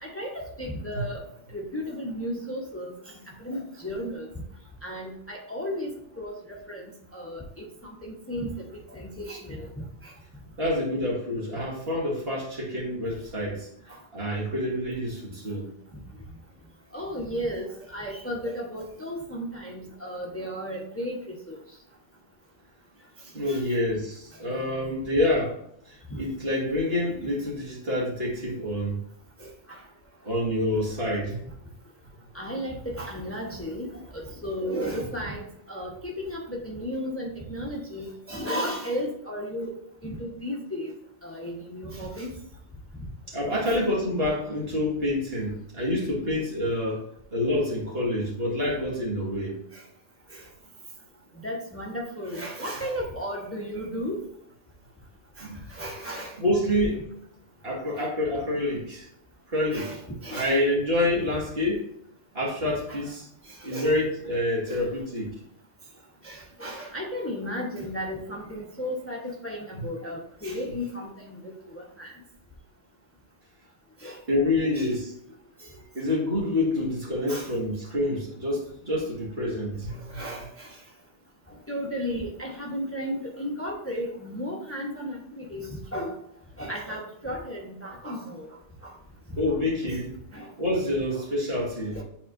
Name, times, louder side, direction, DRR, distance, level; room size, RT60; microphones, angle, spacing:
voice 1, 0.0-4.3 4.8-6.8 7.1-10.1 13.9-14.0 16.9-21.6 23.5-23.6 26.1-26.2 29.4-29.8 32.3-39.7 40.0-40.9 41.2-42.3 43.7-43.8 49.7-49.8 50.3-50.5 51.4-54.2 55.4-56.3 59.7-60.5 62.9-63.0 63.5-63.9 64.7-64.8 66.2-72.1 74.0-74.9 75.6-75.7 77.3-77.5 79.9-80.8 81.7-86.2 86.6-88.5 88.8-88.9 89.5-89.6 90.3-90.5 91.1-91.2 91.9-92.0, equal, 15° left, -1 dB, 0.9 m, -34 dB
voice 2, 10.6-13.7 14.1-15.7 23.3-25.6 25.9-29.0 30.2-31.4 43.3-47.0 47.3-49.6 55.4-55.6 56.4-57.1 57.6-59.1 59.5-59.9 60.3-61.9 62.3-63.3 63.6-65.3 74.3-75.1 75.9-80.2 89.4-90.2 90.6-92.0, left 1 dB, 55° right, -5 dB, 2.0 m, -27 dB
9.2 x 4.2 x 2.6 m, 0.72 s
omnidirectional pair, 1.2 m